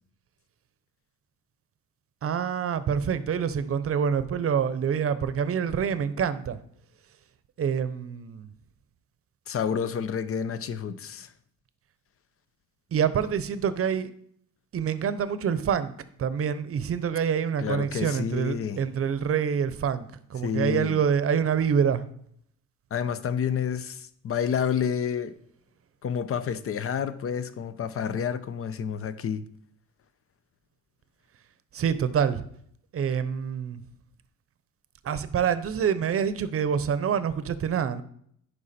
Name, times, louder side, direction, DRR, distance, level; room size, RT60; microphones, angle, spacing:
voice 1, 2.2-6.6 7.6-8.5 12.9-14.1 14.7-15.9 16.2-22.0 31.7-32.4 32.9-33.8 35.0-38.0, right 7 dB, 50° right, 0.7 m, -26 dB
voice 2, 9.5-11.3 17.6-18.8 20.4-21.0 22.9-25.3 26.0-29.4, left 7 dB, 45° left, 0.7 m, -29 dB
11.0 x 4.8 x 4.2 m
cardioid pair, 90°, 30 cm